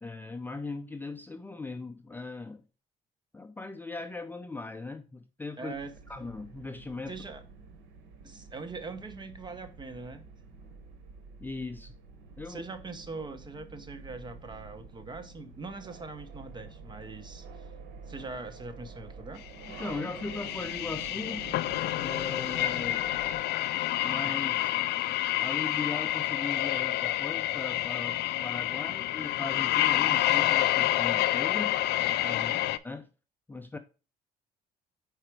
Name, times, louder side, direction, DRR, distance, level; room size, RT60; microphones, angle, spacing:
voice 1, 0.0-2.6 3.3-5.7 6.1-7.1 11.4-11.9 12.4-12.7 19.7-21.4 22.0-23.1 24.0-24.7 25.4-31.8 32.8-33.1 33.5-33.8, left 3 dB, 10° left, 0.4 m, -38 dB
voice 2, 5.6-5.9 7.1-7.4 8.2-10.2 12.5-17.7 18.1-19.4 32.2-32.6, right 3 dB, 25° right, 0.9 m, -42 dB
sound 1, 5.7-23.5, right 4 dB, 90° right, 1.0 m, -48 dB
sound 2, 19.6-32.8, left 14 dB, 75° left, 0.4 m, -28 dB
4.9 x 4.4 x 4.5 m
cardioid pair, 110°, 17 cm